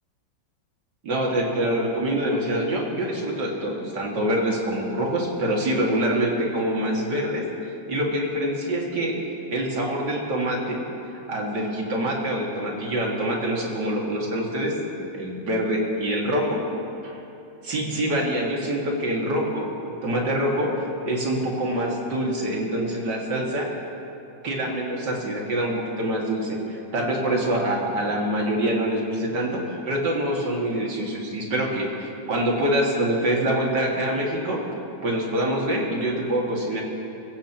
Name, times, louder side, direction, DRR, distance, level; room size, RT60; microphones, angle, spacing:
voice 1, 1.0-7.4 7.9-9.2 9.5-10.8 11.3-16.6 17.0-17.2 17.6-20.7 21.0-23.7 24.4-34.6 35.0-36.8, right 1 dB, 70° right, -2 dB, 2.8 m, -25 dB
24.5 x 15.5 x 3.0 m, 2.9 s
omnidirectional pair, 1.9 m